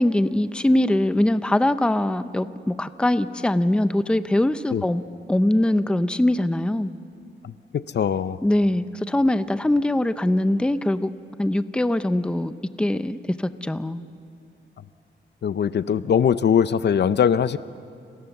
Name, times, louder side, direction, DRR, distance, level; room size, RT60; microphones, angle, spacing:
voice 1, 0.0-5.0 5.3-6.9 8.4-11.1 11.4-14.0, left 1 dB, 5° left, 12 dB, 0.6 m, -22 dB
voice 2, 7.4-8.4 15.4-17.6, left 8 dB, 60° left, 14 dB, 0.7 m, -21 dB
29.5 x 27.0 x 7.2 m, 2.4 s
wide cardioid pair, 165°, 20 cm